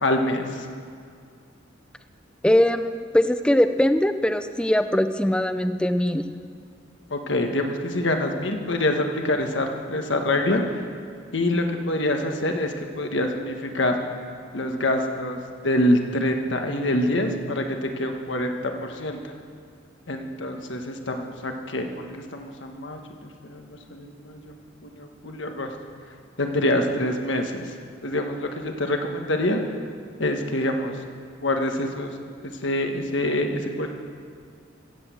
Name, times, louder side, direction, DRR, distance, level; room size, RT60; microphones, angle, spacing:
voice 1, 0.0-0.6 7.1-10.8 11.3-14.0 14.5-19.3 20.1-24.6 24.8-25.7 26.4-27.7 28.0-29.6 30.2-31.0 31.4-32.1 32.6-33.9, left 1 dB, 70° left, 4 dB, 1.4 m, -26 dB
voice 2, 2.4-6.2, left 1 dB, 5° left, 9 dB, 0.5 m, -21 dB
15.5 x 8.3 x 7.6 m, 2.2 s
head